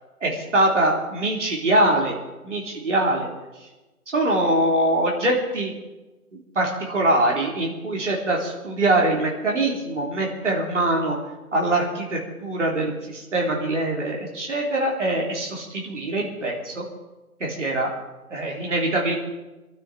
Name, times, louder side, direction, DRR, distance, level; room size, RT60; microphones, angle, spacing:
voice 1, 0.2-2.1 2.4-3.3 4.1-5.7 6.6-11.2 11.5-16.8 17.4-17.9 18.3-19.1, right 1 dB, 55° right, -2 dB, 3.6 m, -23 dB
22.0 x 12.5 x 4.9 m, 1.1 s
figure-of-eight pair, 150°, 44 cm